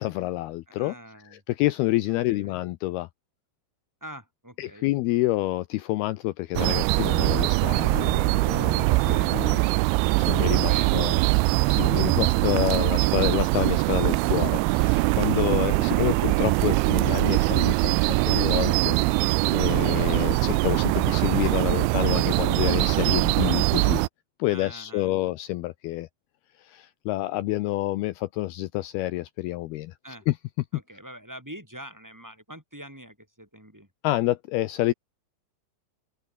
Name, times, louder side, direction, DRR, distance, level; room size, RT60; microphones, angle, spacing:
voice 1, 0.0-0.9 1.5-3.1 4.6-9.6 10.2-11.2 11.7-19.0 19.5-24.0 24.4-26.1 26.6-29.9 30.3-30.4 34.0-34.9, left 17 dB, 85° left, 2.3 m, -28 dB
voice 2, 0.7-1.4 2.1-2.6 4.0-4.9 8.8-9.7 10.6-11.4 24.5-25.3 30.0-30.3 30.7-33.9, equal, 5° right, 7.2 m, -45 dB
sound 1, 6.6-24.1, right 24 dB, 90° right, 2.9 m, -22 dB
open air
omnidirectional pair, 5.2 m